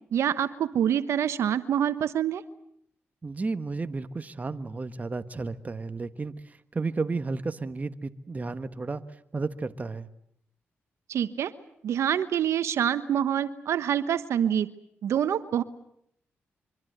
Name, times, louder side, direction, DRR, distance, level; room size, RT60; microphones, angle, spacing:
voice 1, 0.1-2.4 11.1-11.5 11.8-14.7 15.0-15.6, right 9 dB, 80° right, 12 dB, 1.1 m, -26 dB
voice 2, 3.2-10.1, right 3 dB, 35° right, 11 dB, 1.4 m, -33 dB
24.5 x 24.0 x 8.0 m, 0.73 s
cardioid pair, 65°, 5 cm